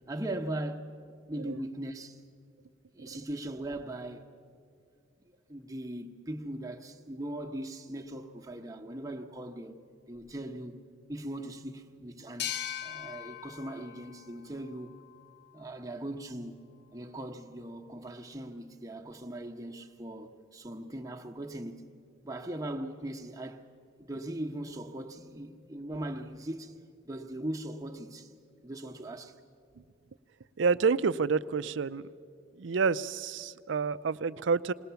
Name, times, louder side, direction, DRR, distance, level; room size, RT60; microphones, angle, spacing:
voice 1, 0.1-0.9 1.3-2.2 2.9-4.3 5.5-9.8 10.1-10.8 11.1-12.5 12.8-15.0 15.5-16.6 16.9-21.8 22.2-23.6 24.0-26.7 27.0-28.3 28.6-29.4, right 1 dB, 15° right, 0.9 m, -39 dB
sound 1, 12.4-15.8, left 10 dB, 55° left, 0.6 m, -41 dB
voice 2, 30.6-32.0 32.5-34.7, right 5 dB, 65° right, 0.5 m, -28 dB
20.5 x 18.5 x 6.9 m
head